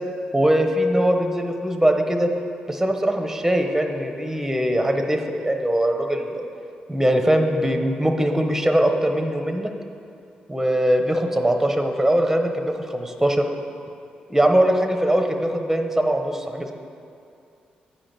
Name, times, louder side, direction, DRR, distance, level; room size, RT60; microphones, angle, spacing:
voice 1, 0.3-2.3 2.7-6.4 6.9-9.7 10.5-13.4 14.3-16.7, right 1 dB, 10° right, 4 dB, 0.9 m, -21 dB
8.6 x 5.0 x 5.9 m, 2.5 s
supercardioid pair, 50°, 3 cm